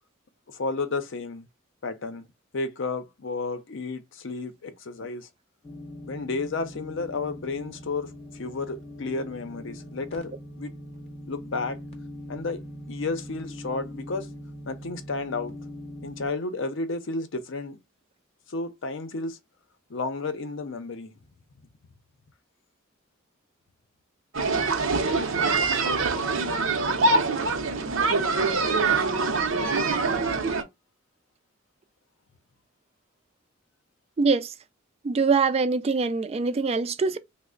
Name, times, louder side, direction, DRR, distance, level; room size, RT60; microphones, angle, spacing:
voice 1, 0.5-1.5 1.8-2.2 2.5-5.3 6.1-10.7 11.3-11.8 12.3-12.6 12.9-14.3 14.7-15.5 16.0-17.8 18.5-19.4 19.9-21.1, left 3 dB, 60° left, 0.6 m, -32 dB
sound 1, 5.6-16.3, equal, 30° left, 0.8 m, -41 dB
sound 2, 24.3-30.6, right 3 dB, 70° right, 0.6 m, -24 dB
voice 2, 34.2-34.5 35.0-37.2, right 4 dB, 30° right, 0.3 m, -23 dB
3.1 x 2.1 x 3.7 m
head